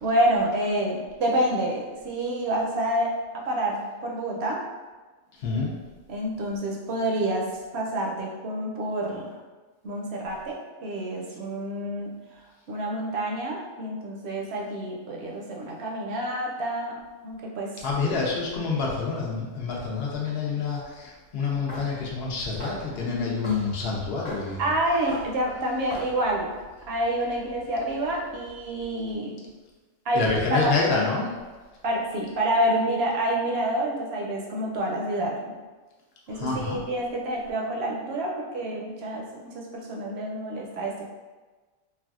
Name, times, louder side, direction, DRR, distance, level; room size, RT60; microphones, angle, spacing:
voice 1, 0.0-4.6 6.1-7.4 7.7-9.4 9.8-10.6 10.8-12.1 12.7-17.0 17.2-17.7 24.6-26.5 26.9-29.3 30.1-30.7 31.8-35.3 36.3-41.1, right 1 dB, 65° right, -1 dB, 0.7 m, -28 dB
voice 2, 5.4-5.7 17.8-24.6 30.1-31.3 36.3-36.8, left 4 dB, 65° left, -3 dB, 0.8 m, -27 dB
axe chopping (in the forest), 21.4-29.2, right 1 dB, 40° left, 1.0 m, -43 dB
3.3 x 2.3 x 2.4 m, 1.3 s
omnidirectional pair, 1.2 m